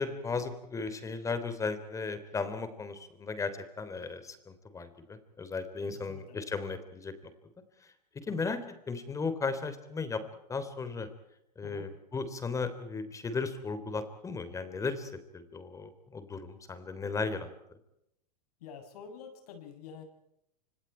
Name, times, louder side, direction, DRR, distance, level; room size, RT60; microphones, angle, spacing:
voice 1, 0.0-7.1 8.2-8.6 8.9-10.2 10.5-11.1 11.6-17.5, left 4 dB, 15° left, 11 dB, 3.5 m, -36 dB
voice 2, 5.9-6.5 8.3-8.5 11.6-11.9 18.6-20.0, left 7 dB, 65° left, 6 dB, 7.8 m, -48 dB
29.0 x 27.0 x 4.5 m, 0.80 s
hypercardioid pair, 130°, 21 cm